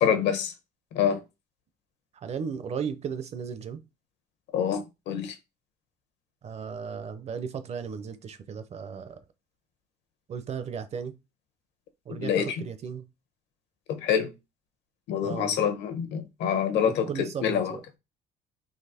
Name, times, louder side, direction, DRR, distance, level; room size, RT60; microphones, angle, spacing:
voice 1, 0.0-0.5 0.9-1.2 4.5-5.3 12.1-12.6 13.9-14.3 15.1-17.1 17.4-17.8, left 8 dB, 70° left, 1.0 m, -26 dB
voice 2, 2.2-3.8 6.4-9.2 10.3-11.1 12.1-13.0 15.2-15.6 16.8-17.8, right 7 dB, 35° right, 0.5 m, -35 dB
4.1 x 2.9 x 4.2 m
cardioid pair, 155°, 19 cm